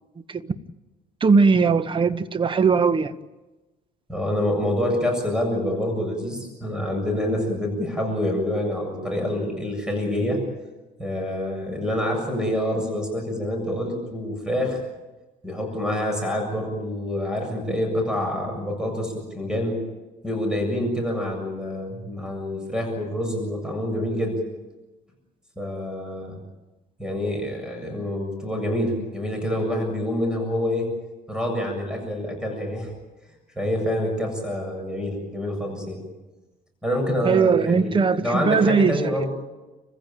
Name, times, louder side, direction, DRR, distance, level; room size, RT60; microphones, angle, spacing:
voice 1, 1.2-3.1 37.2-39.2, right 5 dB, 30° right, 1.2 m, -19 dB
voice 2, 4.1-10.4 11.0-14.8 15.4-19.8 20.2-24.4 25.6-26.4 27.0-30.9 31.3-32.9 33.6-36.0 36.8-39.3, left 1 dB, 5° right, 7.5 m, -27 dB
29.5 x 16.0 x 9.2 m
cardioid pair, 110°, 17 cm